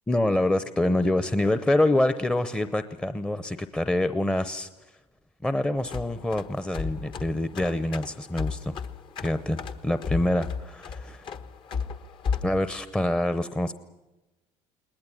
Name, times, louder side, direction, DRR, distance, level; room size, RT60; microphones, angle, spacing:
voice 1, 0.1-4.7 5.4-8.7 9.2-9.6 9.8-11.2 12.4-13.7, left 1 dB, 10° left, 12 dB, 0.7 m, -26 dB
sound 1, 5.8-12.6, left 5 dB, 50° left, 1.3 m, -34 dB
20.0 x 19.5 x 10.0 m, 1.0 s
cardioid pair, 115°, 11 cm